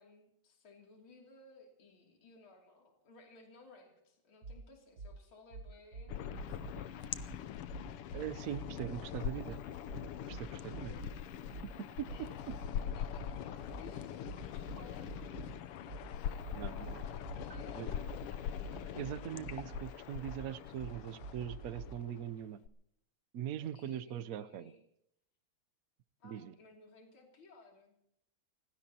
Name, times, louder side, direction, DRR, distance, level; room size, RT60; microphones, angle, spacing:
voice 1, 0.0-7.4 10.6-11.5 12.1-14.1 14.5-15.5 16.3-18.5 23.6-24.8 26.2-27.9, left 3 dB, 65° left, 1 dB, 3.7 m, -59 dB
sound 1, 4.4-4.6 5.0-5.1 5.5-6.8 7.1-7.3 7.7-9.0 9.3-9.5 9.9-11.1 11.5-15.5 15.9-21.9, right 3 dB, 45° right, 1.4 m, -47 dB
sound 2, 6.1-22.7, left 9 dB, 85° left, 1.8 m, -43 dB
voice 2, 8.1-9.6 10.3-10.9 12.0-12.3 16.6-17.0 17.7-17.9 18.9-22.6 23.3-24.7 26.2-26.5, right 10 dB, 65° right, 13 dB, 0.8 m, -41 dB
30.0 x 16.0 x 2.9 m, 0.75 s
omnidirectional pair, 2.4 m